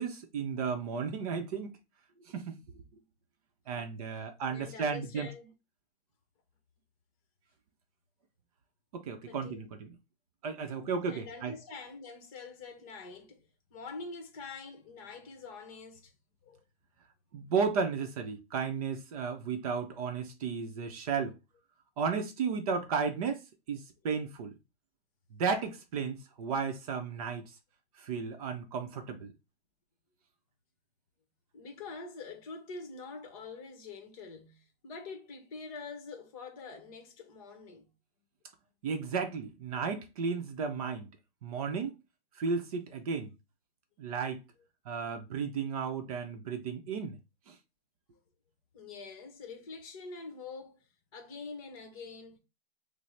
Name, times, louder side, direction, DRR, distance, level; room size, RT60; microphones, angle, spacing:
voice 1, 0.0-1.8 2.3-2.8 3.7-5.3 8.9-9.9 10.4-11.5 17.3-21.4 22.0-24.6 25.3-27.5 28.0-29.3 38.8-41.1 41.4-42.0 42.4-43.3 44.0-44.4 44.9-47.2 47.5-47.6, right 5 dB, 35° right, 0.6 m, -34 dB
voice 2, 4.5-5.5 9.3-9.7 10.7-16.2 16.4-16.6 31.5-37.9 48.7-52.4, left 4 dB, 35° left, 0.9 m, -45 dB
5.9 x 2.0 x 3.2 m
hypercardioid pair, 155°, 31 cm